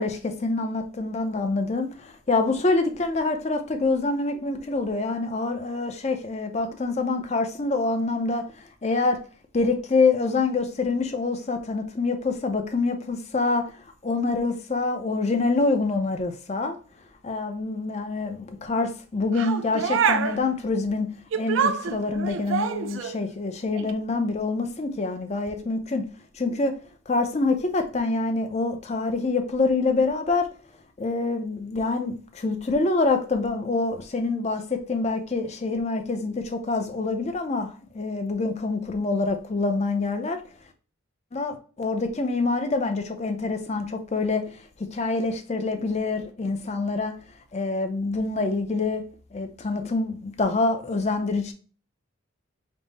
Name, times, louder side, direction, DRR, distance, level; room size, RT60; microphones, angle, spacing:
voice 1, 0.0-9.2 9.5-13.7 14.0-16.8 17.2-26.1 26.3-26.7 27.1-30.5 31.0-40.4 41.3-44.5 44.8-47.2 47.5-49.0 49.3-51.5, left 3 dB, 30° left, 0.5 m, -26 dB
sound 1, 19.3-20.4 21.3-23.2 23.8-23.9, right 6 dB, 70° right, 0.4 m, -26 dB
5.3 x 2.0 x 4.0 m
head